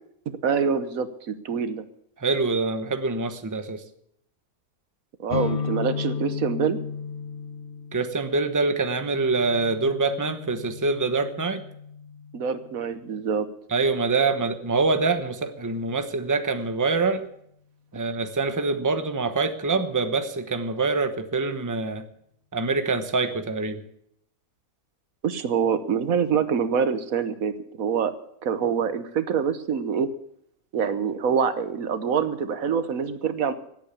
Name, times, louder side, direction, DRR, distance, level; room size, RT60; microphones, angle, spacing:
voice 1, 0.3-1.8 5.2-6.8 12.3-13.5 25.2-28.1 28.4-30.1 30.7-33.5, right 7 dB, 80° right, 12 dB, 1.5 m, -25 dB
voice 2, 2.2-3.8 7.9-11.6 13.7-17.3 17.9-22.1 22.5-23.8, right 3 dB, 15° right, 9 dB, 1.0 m, -25 dB
sound 1, 5.3-12.9, left 6 dB, 50° left, 1.0 m, -34 dB
17.0 x 8.6 x 8.3 m, 0.72 s
omnidirectional pair, 1.4 m